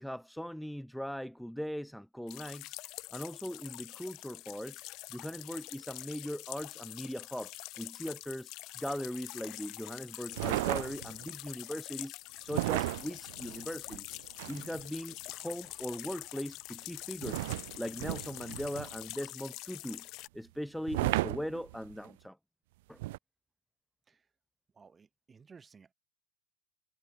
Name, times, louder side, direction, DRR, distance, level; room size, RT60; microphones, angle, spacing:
voice 1, 0.0-2.7 3.1-4.8 5.1-14.1 14.5-20.1 20.3-22.4 22.9-23.0, equal, ahead, 0.5 m, -40 dB
sound 1, 2.3-20.3, left 19 dB, 50° left, 0.5 m, -45 dB
sound 2, 10.3-11.3 12.5-14.9 17.2-19.1 20.9-22.1 23.0-23.2, right 19 dB, 70° right, 0.3 m, -34 dB
voice 2, 24.8-25.9, right 5 dB, 20° right, 2.3 m, -57 dB
supercardioid pair, 115°, 0 cm